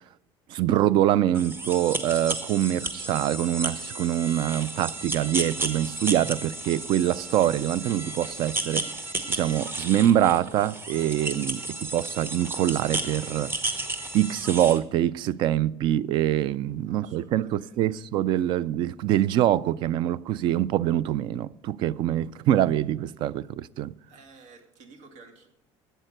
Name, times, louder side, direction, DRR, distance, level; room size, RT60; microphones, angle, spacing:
voice 1, 0.5-8.9 9.3-13.5 14.1-23.9, right 12 dB, 50° right, 0.4 m, -24 dB
sound 1, 1.3-14.8, right 2 dB, 20° right, 0.9 m, -33 dB
voice 2, 16.9-17.3 17.6-17.7 24.1-25.5, right 4 dB, 85° right, 2.3 m, -51 dB
12.0 x 8.0 x 6.5 m
cardioid pair, 175°, 11 cm